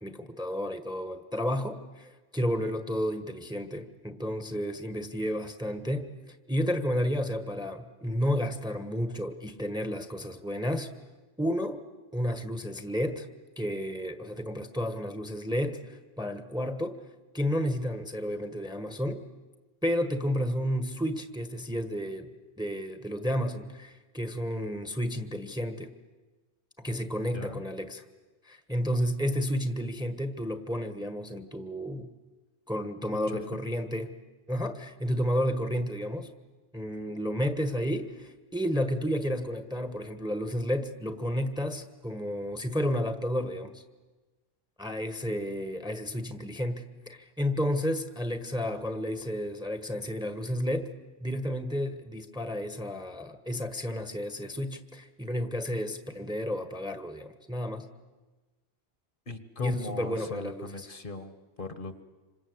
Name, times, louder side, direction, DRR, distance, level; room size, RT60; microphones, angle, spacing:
voice 1, 0.0-10.9 11.4-11.8 12.1-13.3 13.6-17.0 17.3-19.2 19.8-25.9 26.8-28.0 28.4-32.1 32.7-34.1 34.5-36.3 36.7-43.8 44.8-50.9 51.2-57.9 59.6-60.9, equal, 5° right, 9 dB, 1.3 m, -31 dB
voice 2, 33.1-33.5 59.3-62.0, left 2 dB, 50° left, 10 dB, 1.7 m, -39 dB
27.0 x 26.0 x 8.0 m, 1.2 s
omnidirectional pair, 1.1 m